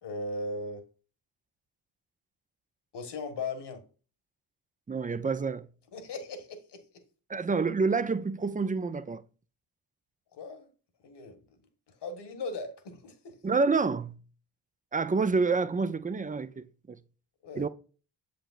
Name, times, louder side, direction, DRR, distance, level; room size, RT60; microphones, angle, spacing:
voice 1, 0.0-0.8 2.9-3.8 5.9-6.8 10.3-10.7 11.0-11.6 11.9-13.4 17.4-17.7, left 2 dB, 55° left, 1.7 m, -38 dB
voice 2, 4.9-5.7 7.3-9.2 13.4-14.2 14.9-17.0 17.5-17.7, right 4 dB, 15° right, 0.5 m, -28 dB
7.5 x 5.2 x 2.5 m
hypercardioid pair, 45°, 48 cm